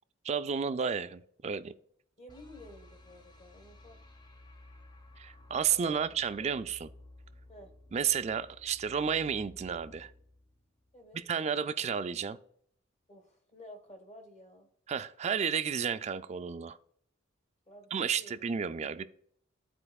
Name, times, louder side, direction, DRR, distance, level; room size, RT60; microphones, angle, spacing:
voice 1, 0.2-1.7 5.2-6.9 7.9-10.1 11.1-12.4 14.9-16.8 17.9-19.0, right 7 dB, 35° right, 12 dB, 0.3 m, -32 dB
voice 2, 2.2-4.0 5.7-6.6 7.5-7.7 10.9-11.2 13.1-14.7 17.7-18.5, left 1 dB, 35° left, 4 dB, 1.4 m, -52 dB
sound 1, 2.3-11.4, left 1 dB, 20° left, 0.6 m, -55 dB
12.0 x 4.4 x 2.3 m, 0.66 s
head